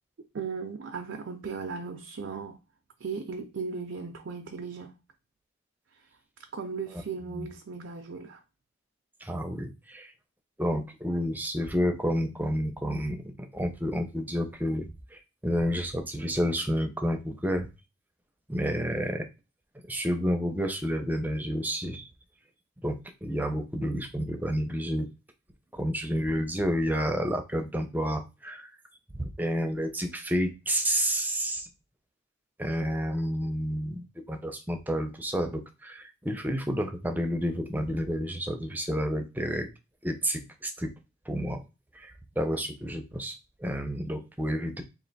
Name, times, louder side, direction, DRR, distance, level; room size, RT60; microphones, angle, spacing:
voice 1, 0.3-2.6 3.0-5.0 5.9-6.1 6.5-8.4, right 5 dB, 75° right, 0.5 m, -37 dB
voice 2, 9.2-10.1 10.6-17.7 18.5-19.3 19.8-22.1 22.8-25.1 25.7-28.7 29.2-31.7 32.6-39.7 40.0-40.9 41.3-41.6 41.9-44.8, equal, 10° right, 0.5 m, -30 dB
3.2 x 2.5 x 4.0 m
head